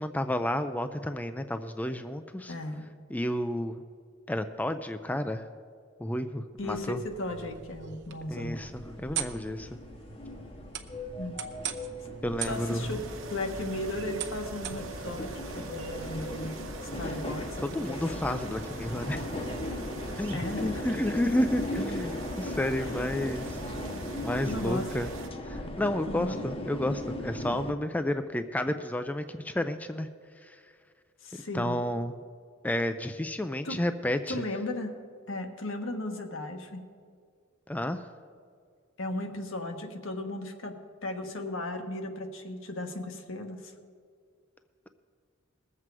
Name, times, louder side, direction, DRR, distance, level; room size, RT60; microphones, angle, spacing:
voice 1, 0.0-2.5 3.1-3.8 4.3-5.5 6.0-7.0 8.3-9.8 12.2-12.9 17.6-19.2 20.2-23.6 24.2-25.1 25.4-30.1 30.4-30.6 31.3-32.2 32.6-34.5 37.7-38.1, left 1 dB, 10° left, 9 dB, 0.4 m, -31 dB
voice 2, 2.5-2.9 6.6-8.6 11.2-11.4 12.4-13.0 13.3-16.5 16.8-18.3 20.3-20.9 22.5-22.6 22.8-23.0 24.4-24.9 26.1-26.4 31.2-31.8 33.6-33.8 34.3-34.9 35.3-36.8 39.0-40.7 41.0-43.7, left 1 dB, 75° left, 4 dB, 1.4 m, -36 dB
sound 1, 6.6-15.1, right 8 dB, 60° right, 0.8 m, -41 dB
sound 2, 8.3-27.7, left 1 dB, 30° left, 0.9 m, -38 dB
sound 3, 12.4-25.3, right 2 dB, 75° right, 1.1 m, -42 dB
20.5 x 7.6 x 4.7 m, 2.2 s
head